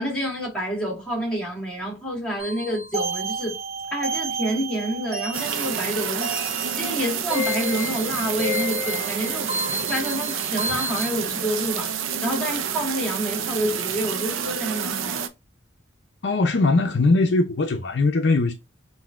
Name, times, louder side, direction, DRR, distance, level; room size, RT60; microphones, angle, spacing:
voice 1, 0.0-3.6 3.9-6.3 6.7-9.5 9.9-11.9 12.2-15.2, equal, 5° left, 1.7 m, -28 dB
sound 1, 2.4-11.1, equal, 35° right, 1.1 m, -31 dB
sound 2, 5.3-15.3, right 8 dB, 85° right, 0.5 m, -29 dB
voice 2, 16.2-18.5, left 3 dB, 60° left, 0.5 m, -20 dB
5.7 x 2.6 x 2.4 m
head